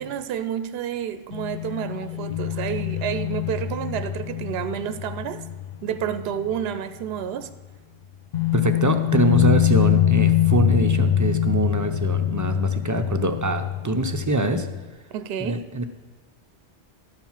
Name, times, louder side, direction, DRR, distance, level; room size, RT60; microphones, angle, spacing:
voice 1, 0.0-5.4 5.8-7.5 15.1-15.6, right 9 dB, 70° right, 11 dB, 0.8 m, -30 dB
sound 1, 1.3-6.7 7.0-7.1 8.3-14.9, left 11 dB, 50° left, 0.6 m, -24 dB
voice 2, 8.5-14.7 15.4-15.8, right 2 dB, 25° right, 6 dB, 0.4 m, -24 dB
12.0 x 4.6 x 7.2 m, 1.3 s
omnidirectional pair, 1.1 m